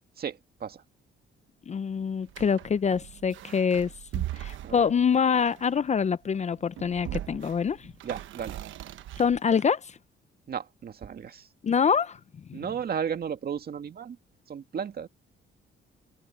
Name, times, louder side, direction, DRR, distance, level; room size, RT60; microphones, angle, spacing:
voice 1, 0.2-0.8 4.6-4.9 8.0-8.6 10.5-11.5 12.5-14.2 14.5-15.1, right 7 dB, 50° right, 2.0 m, -34 dB
voice 2, 1.7-7.9 9.2-10.0 11.6-12.2 12.5-12.6, left 6 dB, 35° left, 0.6 m, -25 dB
sound 1, 2.2-5.9 6.6-9.7, right 13 dB, 75° right, 1.0 m, -39 dB
cardioid pair, 90°, 20 cm